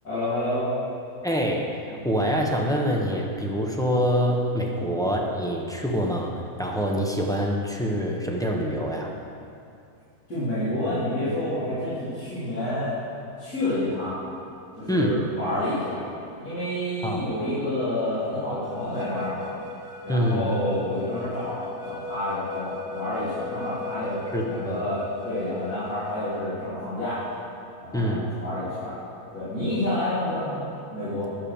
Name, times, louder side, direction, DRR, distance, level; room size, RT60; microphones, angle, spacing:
voice 1, 0.0-0.7 4.8-4.9 10.3-12.9 13.4-14.2 14.8-16.1 16.4-19.5 20.0-27.2 27.8-28.9 29.3-31.3, left 1 dB, 85° left, -15 dB, 3.9 m, -29 dB
voice 2, 1.2-9.1 14.9-15.2 17.0-17.3 20.1-20.6 24.3-24.9 27.9-28.3, equal, 5° left, -1 dB, 0.8 m, -25 dB
sound 1, 18.6-26.4, left 3 dB, 70° right, 1.9 m, -39 dB
10.5 x 6.7 x 7.1 m, 2.5 s
omnidirectional pair, 1.6 m